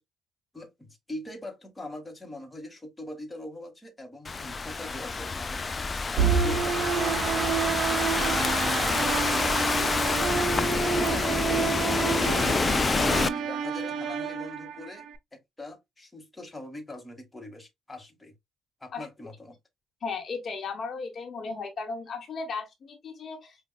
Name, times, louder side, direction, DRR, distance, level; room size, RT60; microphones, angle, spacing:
voice 1, 0.5-5.7 6.1-10.2 10.8-12.3 13.1-15.1 15.3-18.3 18.8-19.6, left 1 dB, 15° left, 1.1 m, -42 dB
Thunderstorm / Rain, 4.3-13.3, left 4 dB, 30° left, 0.3 m, -27 dB
sound 1, 6.2-15.2, right 7 dB, 75° right, 0.5 m, -29 dB
voice 2, 20.0-23.6, left 4 dB, 55° left, 1.0 m, -35 dB
5.3 x 2.2 x 2.2 m
cardioid pair, 90°, 0 cm